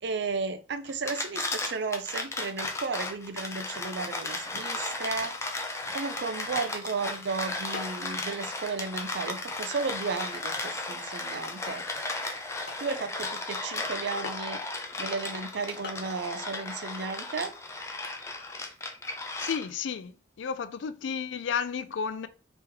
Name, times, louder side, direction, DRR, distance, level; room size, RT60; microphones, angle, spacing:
voice 1, 0.0-5.3 5.9-11.8 12.8-14.6 15.0-17.5, right 4 dB, 65° right, 0.4 m, -34 dB
sound 1, 0.9-19.9, left 2 dB, 15° left, 0.5 m, -35 dB
sound 2, 7.7-8.1 8.5-8.9 9.5-9.6 10.2-10.4 11.1-11.2 11.7-11.8 12.3-12.4 12.7-12.9 14.2-14.7 15.5-15.6 15.8-16.1, left 3 dB, 60° left, 1.1 m, -42 dB
voice 2, 19.4-20.1 20.4-22.3, left 6 dB, 90° left, 0.4 m, -32 dB
3.3 x 3.0 x 3.4 m
head